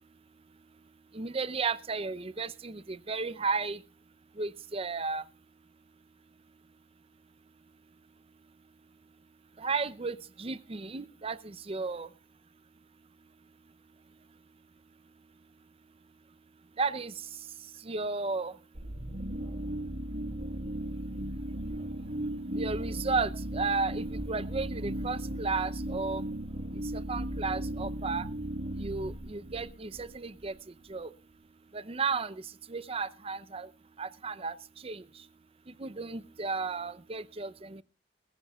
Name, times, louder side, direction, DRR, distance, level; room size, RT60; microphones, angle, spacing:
voice 1, 1.1-3.8 4.4-5.2 9.6-12.1 16.8-17.1 17.8-18.5 22.6-26.2 26.9-28.3 28.8-30.5 30.9-31.1 31.7-32.4 32.7-33.7 34.0-34.5 34.8-35.0 35.8-37.8, right 4 dB, 30° right, 16 dB, 0.6 m, -33 dB
sound 1, 18.7-30.5, right 1 dB, 60° right, 1.6 m, -36 dB
20.0 x 15.0 x 2.4 m, 0.34 s
head